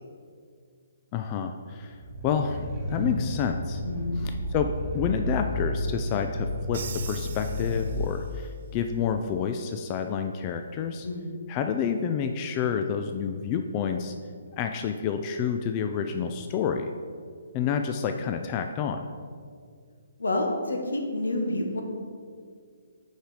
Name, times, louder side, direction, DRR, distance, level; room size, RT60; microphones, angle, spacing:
voice 1, 1.1-2.0 2.2-3.8 4.2-11.1 11.5-14.1 14.6-16.9 17.5-19.1, left 7 dB, 30° left, 6 dB, 0.4 m, -29 dB
sound 1, 1.9-8.0, left 1 dB, 10° right, 1.2 m, -32 dB
voice 2, 3.8-4.3 11.0-11.3 20.2-21.8, left 1 dB, 85° left, 2 dB, 1.2 m, -29 dB
Crash cymbal, 6.7-8.5, right 7 dB, 55° right, 0.4 m, -41 dB
6.4 x 4.9 x 4.9 m, 2.1 s
hypercardioid pair, 145°, 0 cm